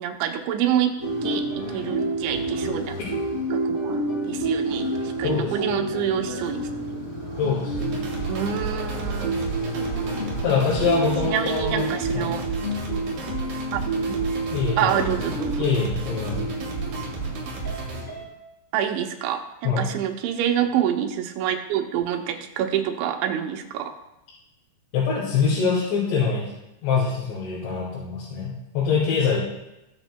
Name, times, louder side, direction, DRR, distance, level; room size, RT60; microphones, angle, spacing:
voice 1, 0.0-3.0 3.5-6.8 8.3-9.5 11.2-12.5 13.7-14.2 14.8-15.6 18.7-23.9, right 9 dB, 80° right, 4 dB, 3.0 m, -27 dB
sound 1, 1.0-18.2, right 1 dB, 40° left, 1.0 m, -29 dB
voice 2, 5.2-5.8 7.4-8.0 10.4-11.9 12.1-12.3 14.5-15.2 15.6-16.5 19.6-19.9 24.9-26.4 26.8-29.4, left 5 dB, 70° left, -7 dB, 4.4 m, -24 dB
sound 2, 7.7-18.0, right 4 dB, 55° right, 3.3 m, -32 dB
21.0 x 7.2 x 2.2 m, 0.94 s
omnidirectional pair, 5.6 m